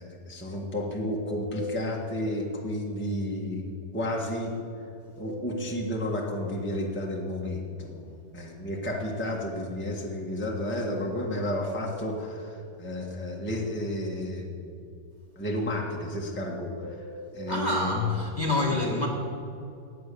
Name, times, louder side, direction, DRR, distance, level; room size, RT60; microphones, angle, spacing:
voice 1, 0.0-3.6 3.9-4.5 5.2-14.8 15.3-17.0 17.3-18.1 18.7-19.0, left 1 dB, 5° left, -1 dB, 1.5 m, -32 dB
sound 1, 1.1-2.5 5.1-6.5 10.7-12.1 16.7-18.1, equal, 55° right, 5.3 m, -41 dB
voice 2, 17.5-19.1, left 2 dB, 25° left, -1 dB, 1.6 m, -27 dB
17.0 x 9.4 x 6.9 m, 2.6 s
omnidirectional pair, 2.0 m